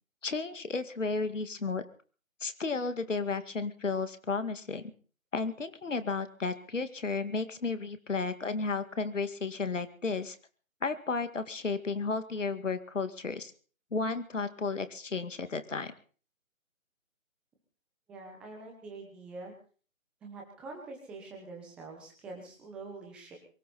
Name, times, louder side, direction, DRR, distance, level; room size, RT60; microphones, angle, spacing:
voice 1, 0.2-1.8 2.4-4.9 5.3-10.4 10.8-13.5 13.9-15.9, left 4 dB, 60° left, 10 dB, 2.2 m, -33 dB
voice 2, 18.1-19.5 20.2-23.4, right 3 dB, ahead, 0 dB, 1.0 m, -45 dB
23.5 x 14.5 x 4.2 m, 0.41 s
figure-of-eight pair, 155°, 41 cm